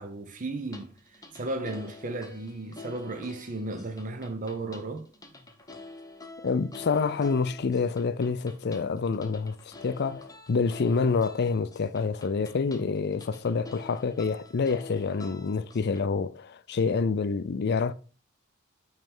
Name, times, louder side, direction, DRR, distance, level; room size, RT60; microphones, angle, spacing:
voice 1, 0.0-5.1, right 2 dB, 40° right, 0.7 m, -35 dB
sound 1, 0.6-16.0, left 2 dB, 15° left, 0.9 m, -47 dB
voice 2, 6.4-17.9, left 4 dB, 50° left, 0.5 m, -27 dB
8.9 x 3.3 x 5.4 m
head